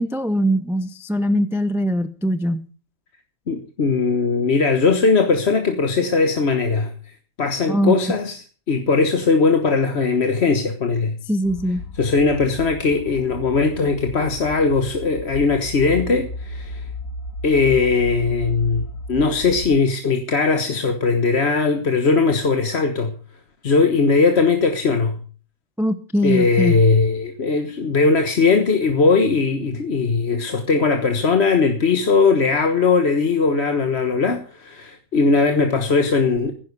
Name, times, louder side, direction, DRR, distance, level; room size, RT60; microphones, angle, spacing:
voice 1, 0.0-2.6 7.7-7.9 11.3-11.8 25.8-26.7, equal, ahead, 0.6 m, -21 dB
voice 2, 3.5-6.9 7.4-11.2 12.0-16.9 17.4-23.1 23.6-25.2 26.2-36.5, left 4 dB, 55° left, 1.6 m, -19 dB
sound 1, 11.4-19.8, left 1 dB, 80° left, 1.9 m, -34 dB
15.5 x 10.5 x 6.7 m
omnidirectional pair, 1.4 m